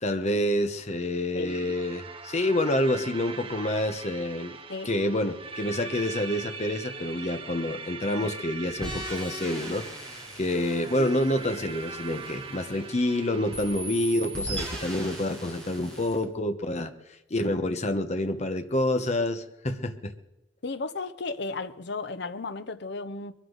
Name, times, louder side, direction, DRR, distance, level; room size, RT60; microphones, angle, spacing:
voice 1, 0.0-4.6 4.8-16.9 17.3-20.1, left 1 dB, 35° left, 1.0 m, -28 dB
voice 2, 1.3-1.8 4.7-4.9 11.0-11.1 20.6-23.3, left 3 dB, 60° left, 0.8 m, -34 dB
sound 1, 1.5-15.1, right 4 dB, 30° right, 1.3 m, -42 dB
sound 2, 8.8-13.1 13.5-16.2, right 1 dB, 5° left, 6.1 m, -39 dB
23.0 x 13.0 x 4.0 m
head